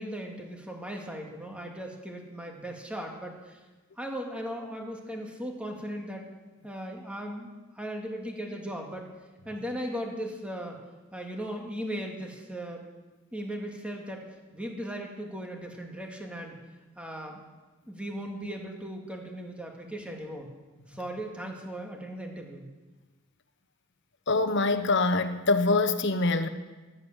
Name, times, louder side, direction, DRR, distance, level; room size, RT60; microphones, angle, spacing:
voice 1, 0.0-3.6 4.0-6.3 6.6-7.5 7.7-9.1 9.5-10.8 11.1-12.8 13.3-14.2 14.5-16.6 17.0-17.4 17.9-20.5 20.9-22.7, equal, 5° right, 1 dB, 2.3 m, -37 dB
voice 2, 24.3-26.5, left 3 dB, 60° left, 10 dB, 1.1 m, -24 dB
14.5 x 11.5 x 7.3 m, 1.2 s
head